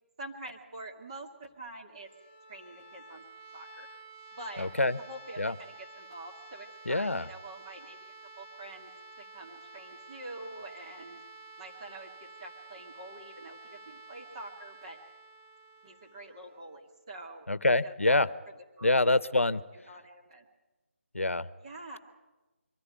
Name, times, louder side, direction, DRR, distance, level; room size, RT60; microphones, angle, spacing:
voice 1, 0.2-2.1 2.5-3.2 3.5-3.9 4.3-4.7 5.0-8.9 9.2-11.2 11.6-15.0 15.8-17.5 17.8-18.2 18.8-19.1 19.7-20.5 21.6-22.0, right 2 dB, 30° right, 0 dB, 2.4 m, -46 dB
sound 1, 1.8-17.6, right 3 dB, 20° left, 1.4 m, -51 dB
voice 2, 4.6-5.0 5.4-5.5 6.9-7.3 17.5-18.3 18.8-19.6 21.1-21.5, left 2 dB, 80° left, 17 dB, 0.8 m, -26 dB
23.5 x 14.5 x 9.3 m, 1.1 s
figure-of-eight pair, 155°, 7 cm